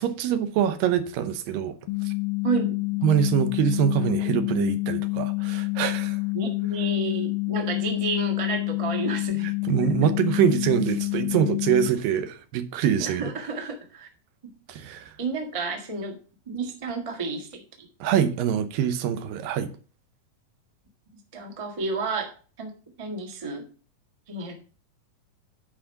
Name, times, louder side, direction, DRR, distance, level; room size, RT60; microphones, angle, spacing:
voice 1, 0.0-1.7 2.1-2.2 3.0-6.2 9.6-13.3 14.7-15.1 18.0-19.7, right 9 dB, 85° right, 2.5 m, -24 dB
sound 1, 1.9-11.9, left 28 dB, 85° left, 1.6 m, -28 dB
voice 2, 2.4-3.0 6.3-9.5 13.0-14.1 15.2-16.2 16.5-17.9 21.3-22.3 22.6-22.7 23.0-23.7 24.3-24.5, right 3 dB, 55° right, 0.3 m, -31 dB
10.0 x 4.5 x 5.7 m
omnidirectional pair, 3.9 m